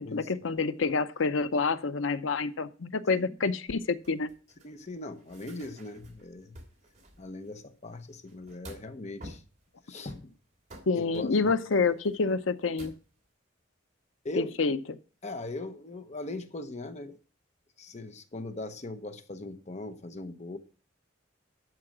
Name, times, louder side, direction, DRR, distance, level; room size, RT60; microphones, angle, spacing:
voice 1, 0.0-4.3 10.9-12.9 14.3-14.8, left 4 dB, 85° left, 0.7 m, -28 dB
sound 1, 4.0-7.6 7.9-8.9 9.2-9.6 10.1-13.0, right 1 dB, 40° right, 2.9 m, -50 dB
voice 2, 4.6-6.6 7.2-9.4 9.8-10.3 11.0-11.4 11.8-11.9 12.3-12.4 14.2-14.6 15.2-17.2 17.8-20.6, left 2 dB, 35° left, 0.9 m, -40 dB
12.5 x 4.7 x 6.1 m
head